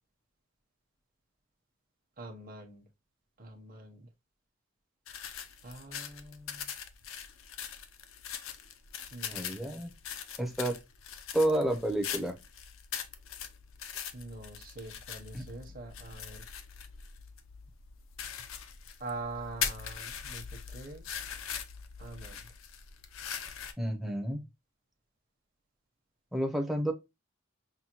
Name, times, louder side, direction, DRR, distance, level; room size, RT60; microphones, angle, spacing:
voice 1, 2.2-2.8 3.4-4.1 5.6-6.7 9.1-9.5 14.1-16.4 19.0-21.1 22.0-22.4, right 2 dB, 40° right, 1.0 m, -44 dB
sound 1, 5.1-23.7, left 8 dB, 75° left, 0.6 m, -41 dB
voice 2, 9.3-9.9 10.4-10.8 11.3-12.4 15.3-15.5 23.8-24.4 26.3-26.9, right 1 dB, ahead, 0.6 m, -30 dB
5.6 x 2.2 x 2.9 m
head